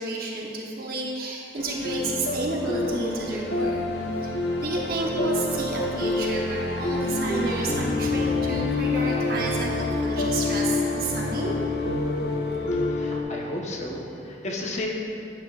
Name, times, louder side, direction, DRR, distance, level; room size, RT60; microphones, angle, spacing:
voice 1, 0.0-3.8 4.2-4.3 4.6-11.5, right 2 dB, 55° right, -2 dB, 1.0 m, -31 dB
sound 1, 1.6-13.2, left 2 dB, 80° left, 1.0 m, -27 dB
voice 2, 12.7-14.9, left 1 dB, 40° left, -1 dB, 1.0 m, -33 dB
11.0 x 9.4 x 2.4 m, 2.6 s
head